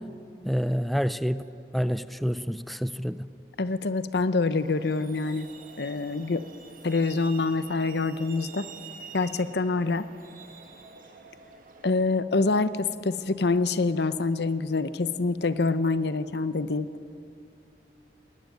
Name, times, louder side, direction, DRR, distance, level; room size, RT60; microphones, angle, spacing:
voice 1, 0.4-1.4 1.7-3.3, equal, ahead, 14 dB, 0.4 m, -28 dB
voice 2, 3.6-5.5 5.8-6.4 6.8-8.7 9.1-10.1 11.8-16.9, left 3 dB, 65° left, 14 dB, 0.8 m, -26 dB
Truck, 4.5-11.9, right 5 dB, 50° right, 1.9 m, -47 dB
20.5 x 18.0 x 9.2 m, 2.9 s
head